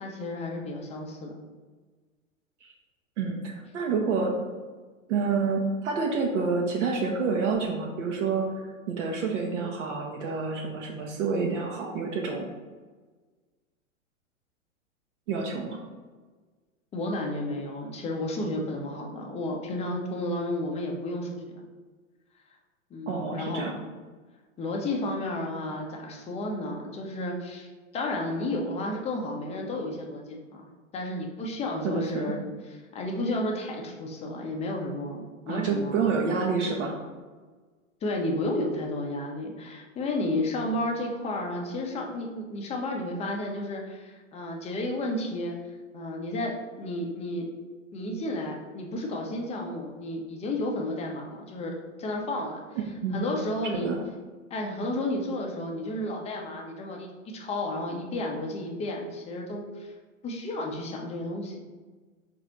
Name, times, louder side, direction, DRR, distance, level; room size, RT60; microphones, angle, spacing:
voice 1, 0.0-1.3 16.9-21.4 22.9-23.6 24.6-30.7 30.9-32.4 32.7-36.0 38.0-45.6 45.9-47.5 47.9-52.6 53.1-53.9 54.5-59.9 60.2-61.5, left 1 dB, 15° left, 1 dB, 0.5 m, -32 dB
voice 2, 3.2-4.4 5.1-12.5 15.3-15.8 23.1-23.8 31.8-32.3 35.5-37.0 52.7-53.4 53.7-54.0, right 4 dB, 60° right, 0 dB, 0.7 m, -28 dB
3.9 x 2.6 x 4.4 m, 1.4 s
hypercardioid pair, 105°, 40 cm